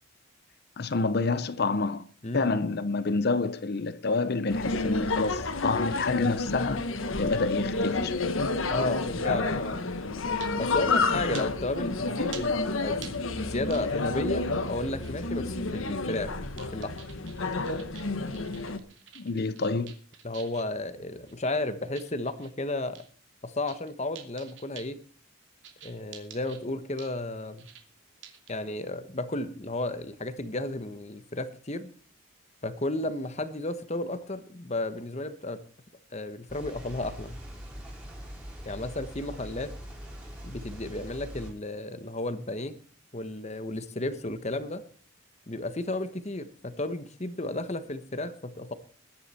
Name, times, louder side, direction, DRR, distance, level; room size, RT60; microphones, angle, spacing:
voice 1, 0.8-2.0 2.3-6.9 7.2-8.3 19.2-20.0, left 3 dB, 50° left, 0.7 m, -28 dB
sound 1, 4.5-18.8, left 3 dB, 75° left, 1.4 m, -30 dB
voice 2, 8.7-9.8 10.6-16.9 20.2-23.0 23.4-25.0 25.8-27.7 28.5-31.9 32.6-35.6 36.1-37.4 38.6-39.7 40.4-42.8 43.1-44.8 45.5-48.7, left 2 dB, 30° left, 1.2 m, -33 dB
sound 2, 10.4-10.6 11.3-11.5 12.3-12.5 13.0-13.1 13.7-14.1 14.8-15.1 15.7-16.3 16.6-20.7 21.3-22.5 23.0-23.1 23.4-23.9 24.2-24.9 25.6-26.6 27.0-27.2 27.6-27.8 28.2-28.5, right 9 dB, 60° right, 2.8 m, -47 dB
sound 3, 36.5-41.5, equal, 10° right, 4.9 m, -42 dB
20.5 x 10.5 x 4.4 m
head